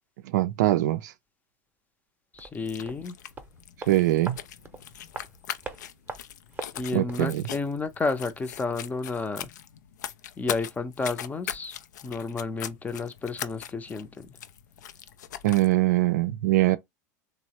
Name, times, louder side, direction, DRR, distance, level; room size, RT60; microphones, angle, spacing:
voice 1, 0.2-1.1 3.9-4.4 6.9-7.5 15.4-16.8, right 15 dB, 75° right, 0.4 m, -22 dB
voice 2, 2.3-3.1 6.7-9.5 10.4-11.8 12.0-14.3, left 3 dB, 15° left, 0.5 m, -31 dB
sound 1, 2.3-7.3 7.6-7.7, right 4 dB, 20° right, 0.7 m, -43 dB
sound 2, 2.5-15.7, left 10 dB, 85° left, 0.4 m, -40 dB
3.1 x 2.0 x 2.9 m
hypercardioid pair, 95°, 9 cm